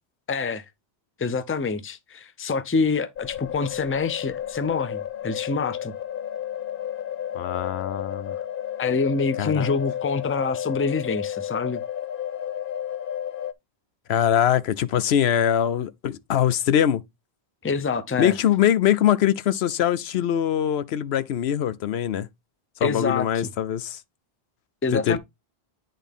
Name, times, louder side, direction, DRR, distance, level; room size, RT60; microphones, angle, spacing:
voice 1, 0.3-0.6 1.2-5.9 8.8-11.8 17.6-18.3 22.8-23.5 24.8-25.2, left 4 dB, 15° left, 0.5 m, -26 dB
sound 1, 3.2-13.5, left 10 dB, 65° left, 0.7 m, -32 dB
voice 2, 7.3-8.4 9.4-9.7 14.1-17.0 18.2-22.3 22.8-24.0 24.9-25.2, left 10 dB, 85° left, 0.9 m, -22 dB
10.0 x 3.9 x 3.5 m
omnidirectional pair, 1.1 m